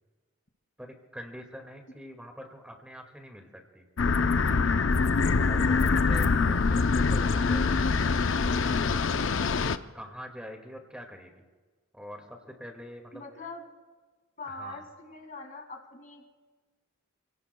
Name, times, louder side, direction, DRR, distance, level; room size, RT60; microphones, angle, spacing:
voice 1, 0.8-3.8 5.5-8.0 9.9-11.5 11.9-13.2 14.5-14.9, equal, 5° right, 3 dB, 2.0 m, -45 dB
sound 1, 4.0-9.8, left 4 dB, 70° left, 0.6 m, -24 dB
voice 2, 13.1-13.7 14.4-16.3, left 3 dB, 40° left, 4 dB, 2.2 m, -43 dB
30.0 x 18.0 x 2.3 m, 1.4 s
head